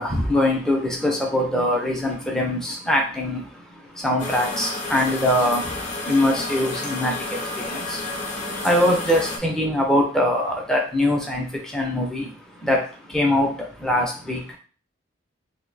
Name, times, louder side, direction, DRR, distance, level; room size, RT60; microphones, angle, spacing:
voice 1, 0.0-14.6, left 1 dB, 5° left, 0.5 m, -23 dB
sound 1, 4.2-9.4, left 2 dB, 35° left, 0.7 m, -30 dB
2.6 x 2.1 x 3.9 m
head